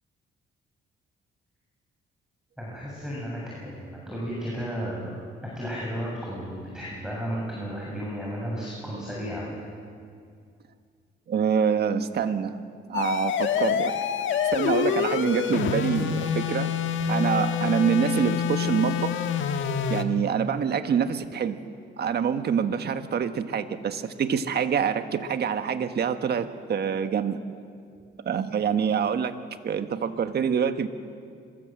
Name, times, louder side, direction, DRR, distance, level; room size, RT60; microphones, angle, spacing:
voice 1, 2.6-5.1 5.4-9.4, equal, 5° right, -5 dB, 7.7 m, -33 dB
voice 2, 11.3-12.6 12.9-13.9 14.5-16.7 17.1-19.1 19.9-21.6 22.0-27.4 28.2-29.3 29.6-30.9, right 7 dB, 55° right, 9 dB, 1.5 m, -26 dB
sound 1, 12.9-20.0, left 8 dB, 75° left, 1.5 m, -26 dB
25.5 x 22.0 x 7.8 m, 2.2 s
cardioid pair, 90°, 20 cm